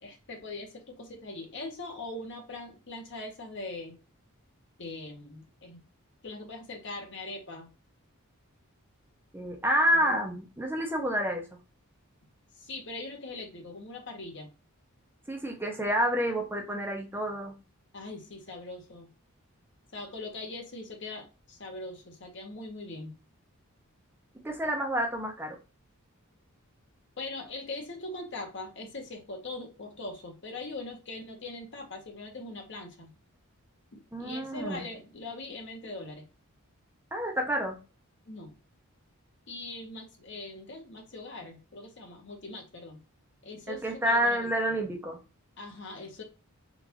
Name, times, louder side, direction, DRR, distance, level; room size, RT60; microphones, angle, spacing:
voice 1, 0.0-4.0 4.8-5.8 6.2-7.7 9.9-10.1 12.5-14.5 17.9-19.1 19.9-23.1 27.2-33.1 33.9-36.3 38.2-38.5 39.5-43.0 43.4-44.5 45.6-46.2, left 2 dB, 55° left, 2 dB, 1.0 m, -41 dB
voice 2, 9.3-11.4 15.3-17.5 24.4-25.6 34.1-34.9 37.1-37.8 43.7-45.2, equal, 10° right, 1 dB, 0.6 m, -29 dB
3.8 x 2.5 x 2.8 m, 0.32 s
head